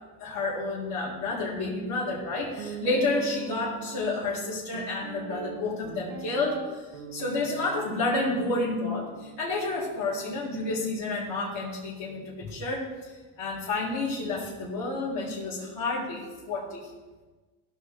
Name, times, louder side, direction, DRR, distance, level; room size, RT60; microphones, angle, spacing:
voice 1, 0.2-16.9, left 2 dB, 65° left, -9 dB, 3.7 m, -30 dB
Guitar, 2.6-10.8, right 8 dB, 75° right, 1.5 m, -42 dB
16.0 x 5.8 x 4.6 m, 1.3 s
supercardioid pair, 105°, 39 cm